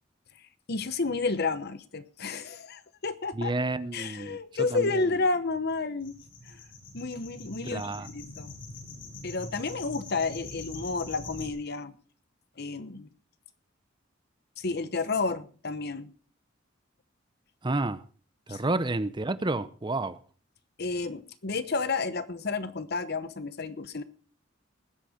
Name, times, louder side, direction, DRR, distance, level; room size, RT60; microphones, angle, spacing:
voice 1, 0.7-3.5 3.9-6.2 6.4-6.6 6.9-8.5 9.2-11.9 12.6-13.1 14.6-16.1 18.5-18.7 20.8-24.0, left 3 dB, 55° left, 1.0 m, -31 dB
voice 2, 3.3-5.0 7.7-8.1 17.6-18.0 18.5-20.2, right 2 dB, 25° right, 0.7 m, -30 dB
sound 1, 6.0-11.5, left 2 dB, 85° left, 6.6 m, -43 dB
20.0 x 8.2 x 5.0 m
head